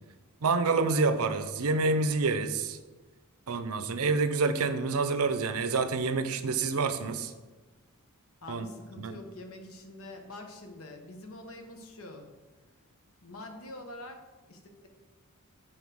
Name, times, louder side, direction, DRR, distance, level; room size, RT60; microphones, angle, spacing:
voice 1, 0.4-2.8 3.5-7.3 8.5-8.7 9.0-9.1, right 4 dB, 80° right, 11 dB, 0.6 m, -27 dB
voice 2, 8.4-12.3 13.2-14.9, left 2 dB, 70° left, 4 dB, 1.1 m, -45 dB
7.3 x 3.8 x 6.2 m, 1.3 s
head